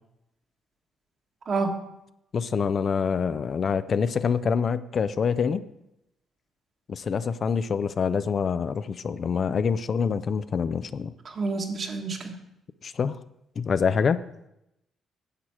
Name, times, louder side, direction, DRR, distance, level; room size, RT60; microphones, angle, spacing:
voice 1, 2.3-5.6 6.9-11.1 12.8-13.2 13.6-14.2, left 6 dB, 50° left, 13 dB, 0.4 m, -26 dB
voice 2, 11.2-12.3, right 3 dB, 50° right, 3 dB, 1.6 m, -28 dB
10.5 x 7.4 x 4.6 m, 0.83 s
cardioid pair, 90°, 0 cm